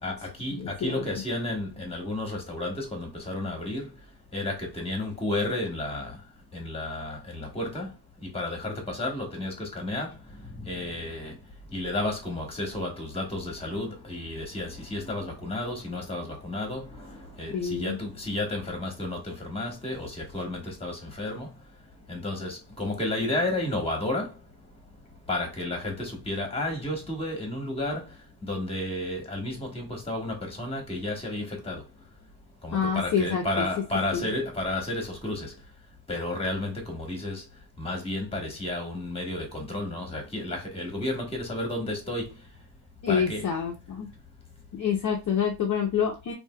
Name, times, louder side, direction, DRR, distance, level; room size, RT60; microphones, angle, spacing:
voice 1, 0.0-3.9 4.3-6.2 6.5-7.9 8.2-10.1 10.6-11.3 11.7-21.5 22.1-24.3 25.3-28.0 28.4-31.8 32.6-35.5 36.1-37.4 37.8-42.3 43.1-43.5, left 1 dB, 15° left, 1.2 m, -32 dB
voice 2, 0.6-1.0 17.5-18.0 32.7-33.4 34.1-34.3 43.0-44.1 44.7-46.3, left 7 dB, 45° left, 0.6 m, -27 dB
3.2 x 2.7 x 2.2 m
cardioid pair, 105°, 45 cm